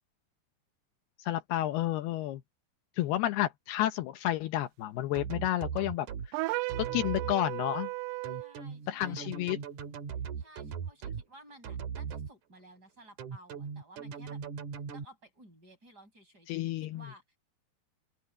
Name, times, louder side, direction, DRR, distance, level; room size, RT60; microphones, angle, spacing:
voice 1, 1.2-2.4 3.0-6.1 6.8-7.9 8.9-9.6 16.5-17.1, left 14 dB, 80° left, 2.7 m, -31 dB
sound 1, 5.1-6.3 6.7-7.3 8.2-11.2 11.6-12.3 13.2-15.0, right 7 dB, 55° right, 2.9 m, -39 dB
sound 2, 6.3-8.5, right 22 dB, 85° right, 2.5 m, -35 dB
voice 2, 8.3-9.3 10.4-14.4 14.9-17.4, right 1 dB, 20° right, 7.2 m, -56 dB
open air
omnidirectional pair, 4.8 m